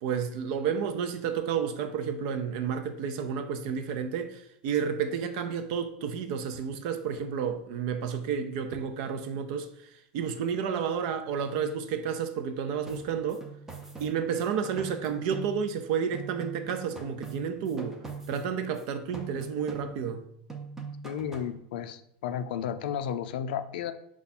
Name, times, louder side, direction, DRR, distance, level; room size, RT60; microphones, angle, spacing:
voice 1, 0.0-9.7 10.1-13.4 14.0-20.2, right 7 dB, 55° right, 0.5 m, -31 dB
sound 1, 12.9-15.9 16.1-18.8 19.1-20.2 20.5-21.6, right 5 dB, 10° right, 0.6 m, -42 dB
voice 2, 21.0-23.9, left 8 dB, 80° left, 0.4 m, -33 dB
5.4 x 2.4 x 4.2 m
supercardioid pair, 160°, 5 cm